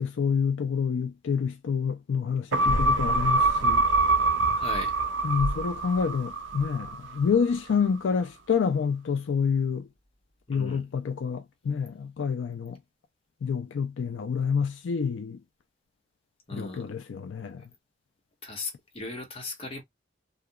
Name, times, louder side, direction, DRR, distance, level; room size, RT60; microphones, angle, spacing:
voice 1, 0.0-3.8 5.2-9.9 10.5-12.8 13.4-15.4 16.5-17.6, left 6 dB, 80° left, 0.4 m, -28 dB
sound 1, 2.5-7.2 7.6-7.7, right 2 dB, 75° right, 0.4 m, -25 dB
sound 2, 2.6-8.4 8.6-8.7, equal, 20° right, 0.5 m, -38 dB
voice 2, 4.5-5.0 10.5-10.9 16.5-16.9 18.4-19.8, left 2 dB, 30° left, 1.0 m, -38 dB
2.8 x 2.2 x 2.2 m
head